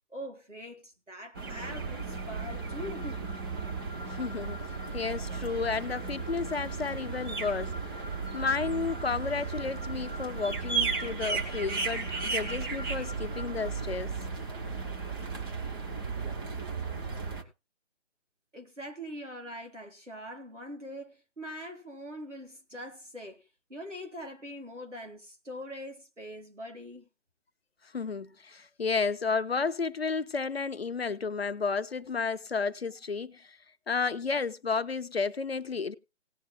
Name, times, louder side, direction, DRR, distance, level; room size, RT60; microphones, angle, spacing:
voice 1, 0.1-3.3 18.5-23.4 23.7-27.1, equal, 85° right, 4.1 m, -42 dB
sound 1, 1.3-17.4, right 4 dB, 20° right, 1.3 m, -35 dB
voice 2, 4.1-4.6 4.9-7.7 8.3-14.1 27.9-33.5 33.9-35.9, left 4 dB, 55° left, 0.9 m, -32 dB
18.0 x 9.1 x 2.2 m
figure-of-eight pair, 145°, 36 cm